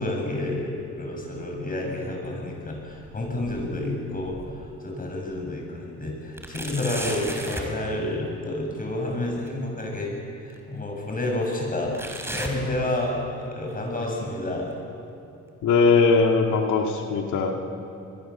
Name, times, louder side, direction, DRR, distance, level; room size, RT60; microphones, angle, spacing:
voice 1, 0.0-10.1 10.4-11.9 12.3-14.7, left 1 dB, 30° left, 0 dB, 7.9 m, -30 dB
sound 1, 1.6-2.5 2.9-4.8 5.3-5.4 6.4-7.8 9.5-9.6 10.5-10.6 11.9-13.3 13.7-14.1 14.7-14.8 15.7-15.8, right 1 dB, 10° right, 4.1 m, -36 dB
voice 2, 15.6-17.5, left 4 dB, 75° left, 2 dB, 2.4 m, -20 dB
24.5 x 21.5 x 7.4 m, 2.9 s
cardioid pair, 90°, 30 cm